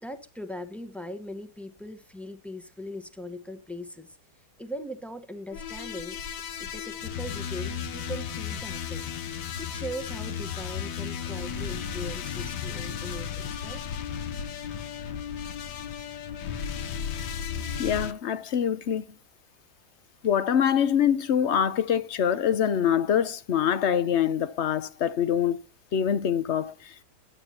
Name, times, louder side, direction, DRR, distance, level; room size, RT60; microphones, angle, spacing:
voice 1, 0.0-4.2 4.6-6.2 6.6-9.0 9.6-13.8, equal, ahead, 0.9 m, -40 dB
sound 1, 5.5-18.1, left 8 dB, 85° left, 1.6 m, -34 dB
voice 2, 17.8-19.2 20.2-25.6 25.9-27.0, left 8 dB, 55° left, 0.8 m, -25 dB
23.0 x 9.0 x 2.9 m
omnidirectional pair, 1.8 m